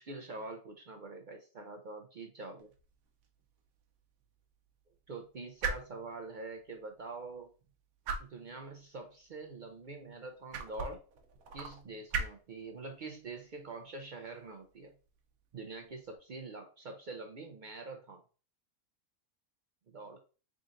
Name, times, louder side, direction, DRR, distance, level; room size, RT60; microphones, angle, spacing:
voice 1, 0.0-2.7 5.1-7.5 8.2-11.0 11.5-14.9 15.5-18.2 19.9-20.2, right 3 dB, 70° right, 4 dB, 0.4 m, -45 dB
sound 1, 2.6-16.2, right 4 dB, 90° right, 1.1 m, -44 dB
3.8 x 3.7 x 2.5 m, 0.36 s
omnidirectional pair, 1.5 m